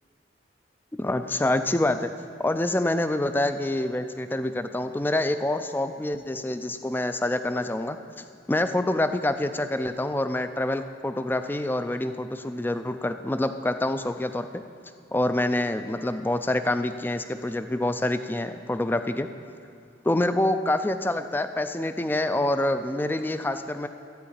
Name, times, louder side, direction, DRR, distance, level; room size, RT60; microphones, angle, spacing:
voice 1, 1.0-2.1 2.4-14.6 15.1-19.3 20.0-23.9, left 1 dB, 10° left, 10 dB, 0.3 m, -26 dB
12.5 x 4.8 x 8.7 m, 2.4 s
head